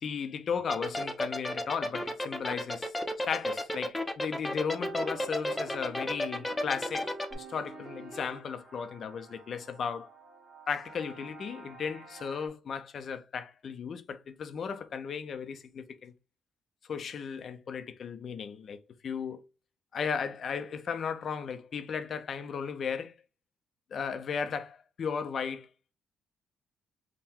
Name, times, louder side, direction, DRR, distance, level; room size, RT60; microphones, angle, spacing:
voice 1, 0.0-2.9 3.2-10.1 10.7-16.1 16.9-19.4 19.9-23.1 23.9-25.7, left 6 dB, 55° left, 0.5 m, -35 dB
sound 1, 0.7-7.3, left 1 dB, 15° left, 0.7 m, -32 dB
sound 2, 4.6-12.5, right 3 dB, 35° right, 1.4 m, -48 dB
3.7 x 2.2 x 4.2 m
cardioid pair, 90°, 0 cm